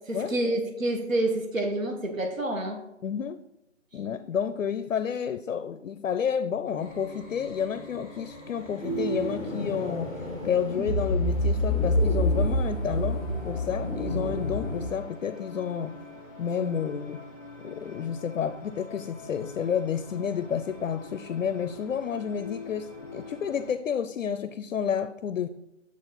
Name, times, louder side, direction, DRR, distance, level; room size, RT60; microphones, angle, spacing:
voice 1, 0.1-2.8, right 1 dB, 85° right, 4 dB, 1.2 m, -28 dB
voice 2, 3.0-3.4 3.9-15.9 16.4-17.2 17.6-25.5, left 7 dB, 80° left, 12 dB, 0.5 m, -30 dB
sound 1, 6.8-23.7, left 2 dB, 5° left, 1.6 m, -45 dB
sound 2, 8.8-14.8, left 1 dB, 15° right, 2.2 m, -27 dB
7.0 x 4.7 x 3.9 m, 0.85 s
figure-of-eight pair, 175°, 39 cm